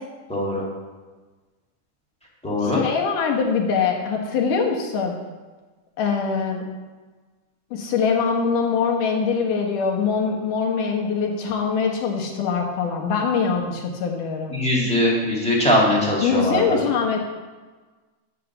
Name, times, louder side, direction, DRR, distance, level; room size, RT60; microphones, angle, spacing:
voice 1, 0.3-0.6 2.4-2.8 14.5-16.8, left 1 dB, 5° left, -4 dB, 0.8 m, -21 dB
voice 2, 2.6-5.2 6.0-6.7 7.7-14.6 16.2-17.2, left 5 dB, 80° left, 1 dB, 2.8 m, -23 dB
11.0 x 3.9 x 6.9 m, 1.3 s
omnidirectional pair, 3.6 m